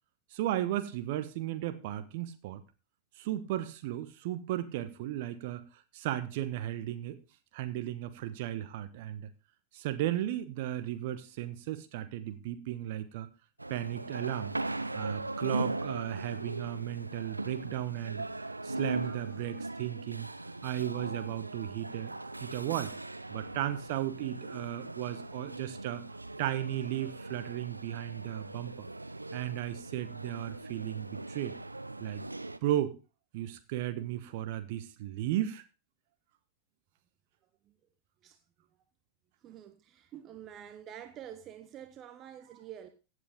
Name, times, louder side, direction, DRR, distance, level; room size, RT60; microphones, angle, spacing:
voice 1, 0.3-2.6 3.2-5.6 5.9-7.2 7.5-9.3 9.7-13.3 13.7-14.5 14.9-18.2 18.6-20.3 20.6-22.1 22.4-22.9 23.3-26.0 26.4-28.9 29.3-31.6 32.0-32.2 32.6-33.0 33.3-35.6, right 13 dB, 50° right, 1.2 m, -35 dB
sound 1, 13.6-32.6, right 2 dB, 85° right, 0.6 m, -39 dB
voice 2, 39.4-42.9, right 10 dB, 30° right, 0.9 m, -47 dB
15.5 x 8.3 x 3.7 m
figure-of-eight pair, 90°, 0 cm